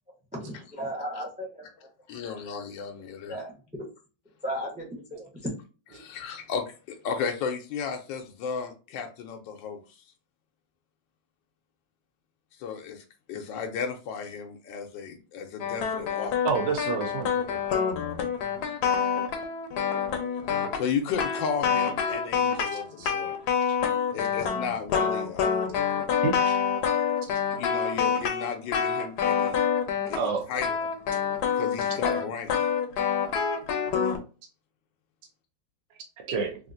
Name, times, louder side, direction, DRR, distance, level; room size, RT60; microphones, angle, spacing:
voice 1, 0.3-1.9 2.2-2.4 3.3-3.8 4.4-5.5, equal, 10° right, 0.3 m, -36 dB
voice 2, 2.1-3.4 6.0-9.8 12.6-16.4 20.5-23.4 24.1-25.8 27.5-29.6 30.1-30.9 31.5-32.5, left 6 dB, 90° left, 1.3 m, -34 dB
sound 1, 15.6-30.3 30.6-34.2, left 7 dB, 75° left, 1.1 m, -27 dB
voice 3, 16.4-17.6 23.0-23.1 26.2-26.6 30.1-30.5 36.2-36.6, right 5 dB, 75° right, 1.2 m, -29 dB
3.5 x 2.4 x 2.5 m
omnidirectional pair, 1.9 m